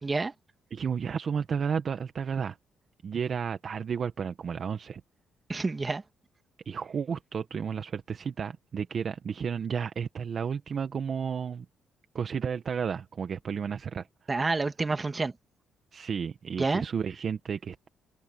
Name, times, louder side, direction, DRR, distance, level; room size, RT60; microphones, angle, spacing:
voice 1, 0.0-0.3 5.5-6.0 14.3-15.3 16.6-16.8, right 3 dB, 25° right, 1.9 m, -28 dB
voice 2, 0.7-2.6 3.0-5.0 6.6-11.6 12.1-14.1 15.9-17.9, right 6 dB, 50° right, 1.4 m, -32 dB
cardioid pair, 90°, 0 cm